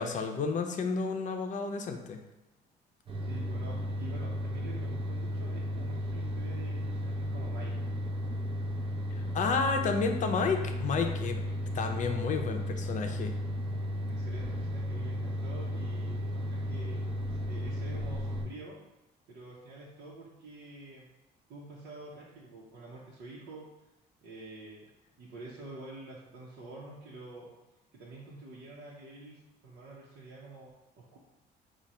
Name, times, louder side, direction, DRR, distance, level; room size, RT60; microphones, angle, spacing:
voice 1, 0.0-2.2 9.1-11.4 11.7-13.3, left 5 dB, 45° left, 5 dB, 0.6 m, -31 dB
sound 1, 3.1-18.5, equal, 30° right, 0.8 m, -34 dB
voice 2, 3.2-7.7 14.1-17.0 17.4-18.8 19.3-21.1 21.5-23.7 24.2-24.9 25.2-27.5 27.9-31.2, right 2 dB, 75° right, -6 dB, 1.0 m, -47 dB
4.8 x 2.4 x 4.2 m, 0.99 s
cardioid pair, 110°, 17 cm